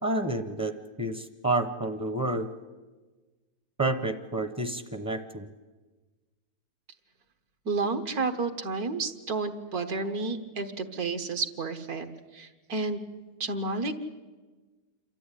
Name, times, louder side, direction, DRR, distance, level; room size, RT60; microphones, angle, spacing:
voice 1, 0.0-2.5 3.8-5.5, right 2 dB, 15° right, 9 dB, 0.6 m, -29 dB
voice 2, 7.7-12.1 12.3-13.0 13.4-13.9, right 3 dB, 75° right, 7 dB, 2.0 m, -31 dB
27.5 x 13.5 x 10.0 m, 1.3 s
omnidirectional pair, 1.6 m